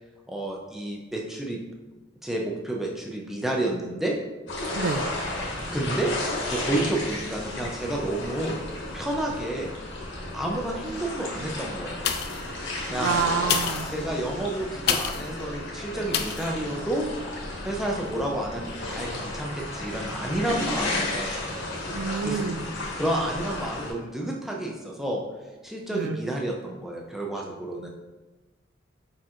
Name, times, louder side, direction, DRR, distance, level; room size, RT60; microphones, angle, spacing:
voice 1, 0.3-1.6 2.2-4.2 5.7-6.1 6.4-8.6 8.9-9.7 10.3-12.0 12.9-13.2 13.9-17.1 17.6-21.4 22.2-22.4 22.9-25.2 25.6-27.9, right 1 dB, ahead, -1 dB, 0.5 m, -30 dB
sound 1, 4.5-23.9, left 2 dB, 80° left, 1.3 m, -33 dB
voice 2, 4.8-5.1 12.6-13.9 21.9-22.7 25.9-26.2, right 6 dB, 90° right, 10 dB, 0.3 m, -28 dB
sound 2, 12.0-12.5 13.4-15.3 16.1-16.5 17.0-17.1, left 8 dB, 55° left, 0.3 m, -29 dB
4.6 x 4.4 x 2.5 m, 1.2 s
head